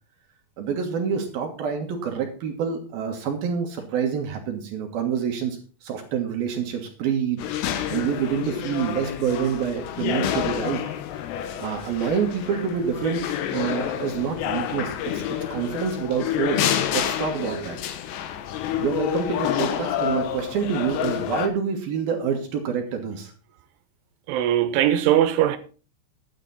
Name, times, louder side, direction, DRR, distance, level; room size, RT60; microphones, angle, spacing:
voice 1, 0.6-7.5 7.9-10.8 11.6-15.2 15.5-17.8 18.8-23.3, right 7 dB, 65° right, 2.9 m, -27 dB
sound 1, 7.4-21.5, left 10 dB, 75° left, 2.9 m, -28 dB
voice 2, 24.3-25.6, right 11 dB, 90° right, 3.3 m, -20 dB
11.5 x 10.0 x 4.1 m
omnidirectional pair, 5.6 m